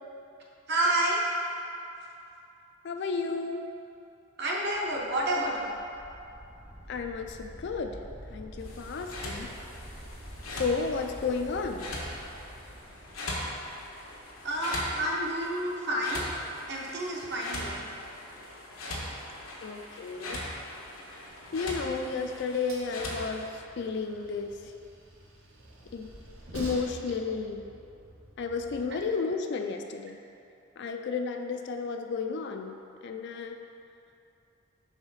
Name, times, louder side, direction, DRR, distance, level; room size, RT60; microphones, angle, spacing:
voice 1, 0.7-1.2 4.4-5.7 14.4-16.2 16.7-17.8, right 1 dB, 55° right, -3 dB, 0.9 m, -29 dB
voice 2, 2.8-3.7 6.9-8.0 8.3-9.5 10.5-11.9 15.9-16.1 19.6-20.4 21.5-24.5 25.9-26.1 26.5-27.6 28.4-30.2 30.8-33.6, left 4 dB, 55° left, 5 dB, 0.4 m, -32 dB
sound 1, 4.6-14.6, equal, 10° right, 0.4 m, -48 dB
sound 2, 8.6-23.5, left 1 dB, 85° left, 1.0 m, -40 dB
Train, 21.3-29.0, right 1 dB, 85° right, 1.1 m, -48 dB
4.8 x 3.6 x 5.6 m, 2.7 s
head